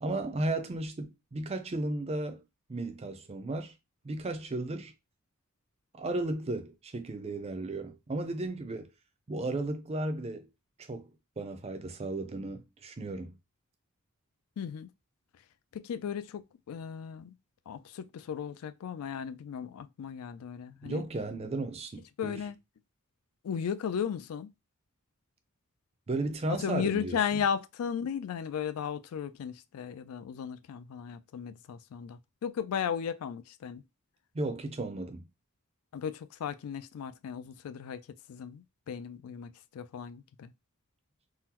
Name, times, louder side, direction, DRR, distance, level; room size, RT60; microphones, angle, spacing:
voice 1, 0.0-2.4 2.7-3.7 4.0-4.9 6.0-8.9 9.3-10.5 10.9-13.3 20.8-22.4 26.1-27.2 34.3-35.2, right 2 dB, 30° right, 0.4 m, -34 dB
voice 2, 14.6-14.9 15.7-16.4 16.7-17.3 17.7-21.0 22.2-22.6 23.4-24.5 26.5-33.8 35.9-40.5, left 7 dB, 75° left, 0.3 m, -35 dB
3.7 x 2.0 x 2.8 m
head